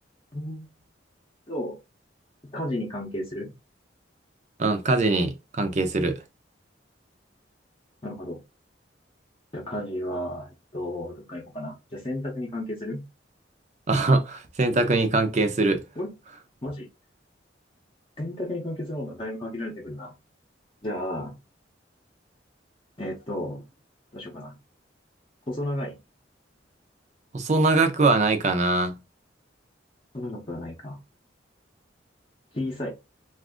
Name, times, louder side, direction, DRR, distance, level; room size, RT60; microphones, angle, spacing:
voice 1, 0.3-0.7 1.5-1.8 2.5-3.5 8.0-8.4 9.5-13.0 16.0-16.1 16.6-16.9 18.2-20.1 20.8-21.4 23.0-23.6 24.1-24.5 25.5-26.0 30.1-31.0 32.5-32.9, left 1 dB, 30° left, 0.8 m, -33 dB
voice 2, 4.6-6.2 13.9-15.8 27.3-29.0, right 3 dB, 40° right, 0.6 m, -22 dB
2.6 x 2.5 x 3.5 m
head